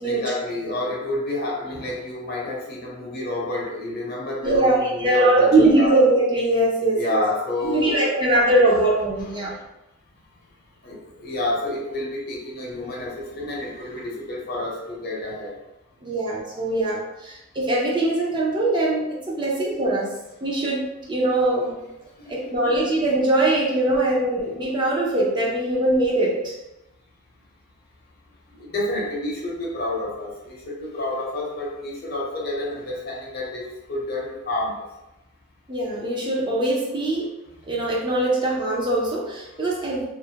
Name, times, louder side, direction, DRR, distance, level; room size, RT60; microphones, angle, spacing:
voice 1, 0.0-5.9 6.9-8.1 9.4-9.5 10.8-15.6 22.2-22.5 28.5-34.8, left 2 dB, 50° left, -3 dB, 0.6 m, -29 dB
voice 2, 4.4-7.2 7.6-9.5 16.0-21.7 22.3-26.5 35.7-37.3 37.7-40.1, right 2 dB, 20° right, -5 dB, 0.5 m, -21 dB
2.4 x 2.1 x 2.7 m, 0.94 s
head